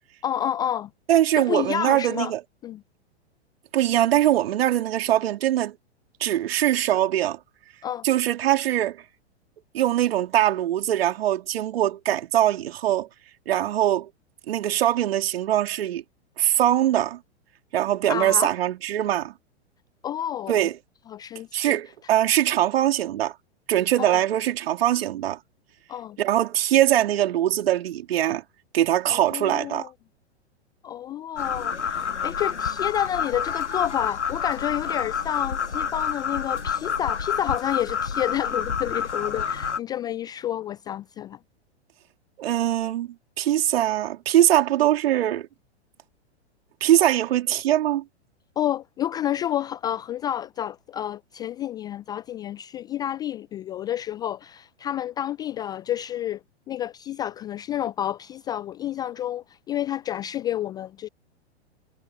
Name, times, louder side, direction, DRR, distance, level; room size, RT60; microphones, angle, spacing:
voice 1, 0.2-0.9 1.3-2.3 2.6-2.8 7.8-8.1 18.1-18.5 20.0-20.6 21.1-21.8 24.0-24.2 25.9-26.2 29.1-29.9 30.8-41.4 48.6-56.4 56.7-61.1, left 11 dB, 10° left, 0.3 m, -30 dB
voice 2, 1.1-2.4 3.7-5.8 6.2-7.4 8.0-9.0 9.7-13.1 13.5-14.1 14.5-16.0 16.4-17.2 17.7-19.3 20.5-20.7 21.5-23.3 23.7-25.4 26.2-28.4 28.7-29.9 42.4-43.1 43.4-45.5 46.8-48.0, right 12 dB, 60° right, 3.4 m, -22 dB
sound 1, 31.4-39.8, left 6 dB, 85° left, 1.7 m, -28 dB
figure-of-eight pair, 105°, 34 cm